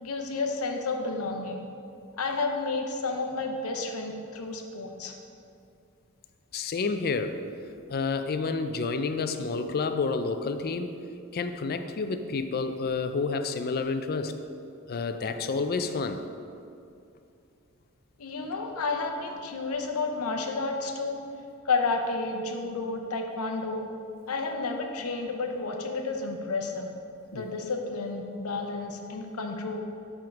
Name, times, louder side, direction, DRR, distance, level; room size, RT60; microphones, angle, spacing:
voice 1, 0.0-1.7 2.2-5.1 18.2-21.2 21.6-23.8 24.3-26.9 27.3-29.8, left 3 dB, 80° left, 3 dB, 0.8 m, -31 dB
voice 2, 6.5-7.4 7.9-11.0 11.3-14.3 14.9-16.2 27.3-27.4, left 4 dB, 45° left, 9 dB, 0.4 m, -29 dB
7.6 x 3.6 x 5.8 m, 2.5 s
head